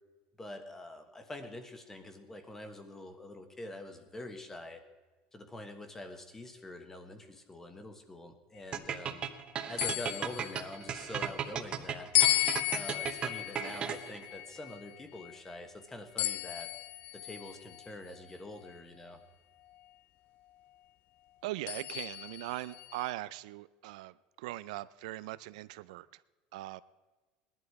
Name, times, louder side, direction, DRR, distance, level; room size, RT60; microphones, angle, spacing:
voice 1, 0.4-4.8 5.3-9.2 9.7-12.1 12.7-16.7 17.1-19.2, left 1 dB, 10° left, 8 dB, 1.2 m, -45 dB
sound 1, 8.7-14.3, right 8 dB, 30° right, 0.9 m, -36 dB
sound 2, 9.8-11.3 12.1-15.6 16.2-17.9 18.6-18.7 21.7-23.1, left 16 dB, 40° left, 0.3 m, -34 dB
voice 2, 21.4-26.1 26.5-26.8, right 17 dB, 85° right, 16 dB, 0.4 m, -40 dB
18.0 x 11.0 x 4.7 m, 1.3 s
cardioid pair, 155°, 4 cm